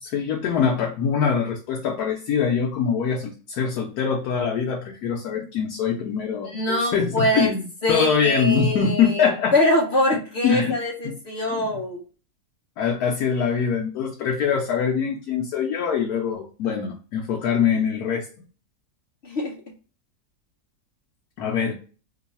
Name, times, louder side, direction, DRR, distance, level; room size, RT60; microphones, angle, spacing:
voice 1, 0.0-9.5 10.4-11.2 11.6-11.7 12.8-18.3 21.4-21.7, left 6 dB, 80° left, 0 dB, 1.1 m, -23 dB
voice 2, 6.4-7.5 7.8-12.0 19.2-19.5, left 1 dB, 55° left, 0 dB, 0.8 m, -23 dB
3.0 x 2.3 x 4.0 m, 0.38 s
omnidirectional pair, 1.6 m